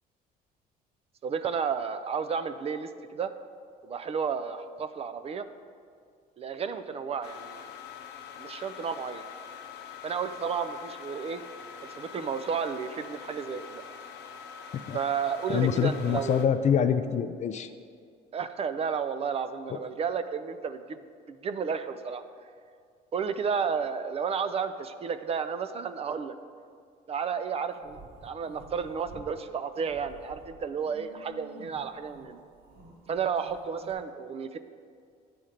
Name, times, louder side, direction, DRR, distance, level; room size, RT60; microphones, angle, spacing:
voice 1, 1.2-3.3 3.8-5.5 6.4-7.7 8.4-9.2 10.0-11.4 11.9-13.8 14.9-16.5 18.3-21.0 21.3-22.2 23.1-26.4 27.1-32.4 33.1-34.6, right 6 dB, 35° right, 10 dB, 0.4 m, -32 dB
sound 1, 7.2-16.5, left 7 dB, 75° left, 0.7 m, -44 dB
voice 2, 15.5-17.7, left 8 dB, 45° left, 9 dB, 0.4 m, -25 dB
sound 2, 27.7-29.3 29.7-33.9, right 1 dB, 75° right, 2.1 m, -51 dB
10.5 x 4.3 x 5.0 m, 2.2 s
cardioid pair, 110°, 17 cm